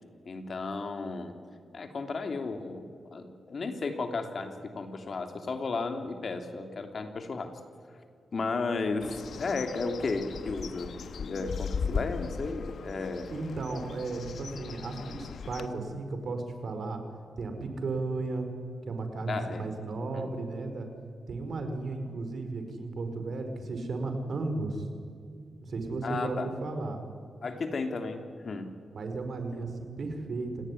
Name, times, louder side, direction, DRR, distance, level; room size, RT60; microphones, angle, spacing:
voice 1, 0.3-1.3 1.7-2.8 3.1-7.5 8.3-10.9 11.2-13.4 19.3-19.7 20.1-20.3 26.0-26.5 27.4-28.7 29.5-29.6, left 3 dB, 50° left, 6 dB, 2.9 m, -34 dB
Bird, 9.0-15.7, left 5 dB, 70° left, 1.2 m, -38 dB
voice 2, 13.3-17.0 17.4-18.5 18.8-20.9 21.3-24.9 25.6-27.0 28.9-30.7, right 3 dB, 60° right, 7 dB, 4.6 m, -34 dB
27.0 x 19.0 x 9.8 m, 2.3 s
cardioid pair, 90°, 0 cm